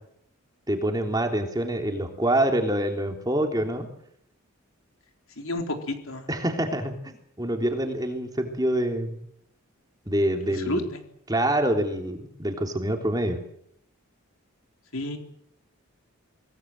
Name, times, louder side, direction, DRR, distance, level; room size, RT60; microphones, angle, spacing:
voice 1, 0.7-3.9 6.3-7.0 7.4-9.2 10.1-10.9 11.3-13.4, right 1 dB, 20° right, 3 dB, 3.3 m, -26 dB
voice 2, 5.4-6.3 10.7-10.8 14.9-15.2, left 2 dB, 70° left, 4 dB, 3.9 m, -30 dB
25.5 x 18.5 x 7.6 m, 0.72 s
head